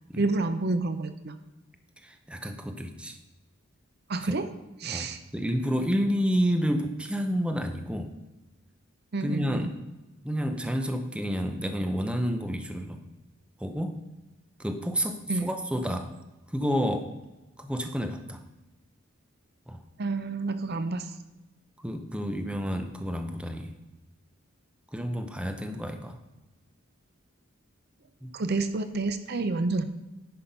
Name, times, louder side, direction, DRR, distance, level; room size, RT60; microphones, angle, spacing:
voice 1, 0.2-1.4 4.1-4.4 4.8-5.2 9.1-9.7 15.3-15.5 20.0-21.1 28.3-29.8, right 3 dB, 50° right, 10 dB, 0.6 m, -29 dB
voice 2, 2.0-3.2 4.2-4.4 4.8-8.1 9.2-9.8 10.2-13.0 13.6-14.0 14.6-16.1 16.5-17.1 17.6-18.4 19.7-19.8 21.8-23.7 24.9-26.2 28.2-28.3, equal, 5° right, 6 dB, 0.6 m, -30 dB
10.0 x 5.6 x 5.3 m, 1.0 s
head